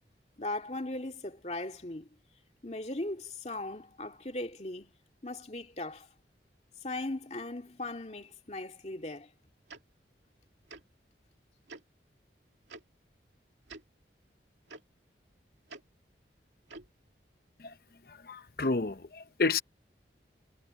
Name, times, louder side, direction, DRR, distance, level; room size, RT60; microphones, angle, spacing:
voice 1, 0.4-2.1 2.6-4.9 5.2-6.1 6.8-9.3, left 2 dB, 40° left, 2.2 m, -38 dB
Tick-tock, 9.7-9.8 10.7-10.8 11.7-11.8 12.7-12.8 13.7-13.8 14.7-14.8 15.7-15.8 16.7-16.9, right 3 dB, 85° right, 2.7 m, -46 dB
voice 2, 18.3-19.6, left 3 dB, 55° left, 0.8 m, -30 dB
head